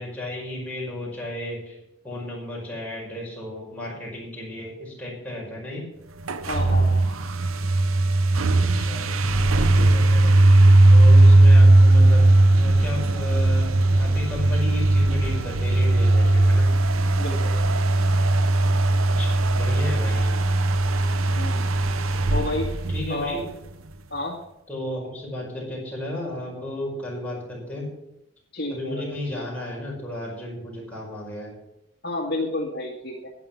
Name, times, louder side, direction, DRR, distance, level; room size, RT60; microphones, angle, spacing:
voice 1, 0.0-1.8 2.0-5.8 8.6-10.4 10.9-16.7 19.2-20.3 22.9-23.5 24.7-27.9 28.7-31.5, left 1 dB, 5° left, -4 dB, 5.1 m, -34 dB
sound 1, 6.2-23.7, right 2 dB, 90° right, 0.8 m, -18 dB
voice 2, 6.5-7.0 17.2-17.5 21.4-21.7 22.3-22.7 23.1-23.4 24.1-24.4 28.5-29.0 32.0-33.3, left 1 dB, 50° left, -1 dB, 1.9 m, -30 dB
11.0 x 9.6 x 5.8 m, 0.85 s
head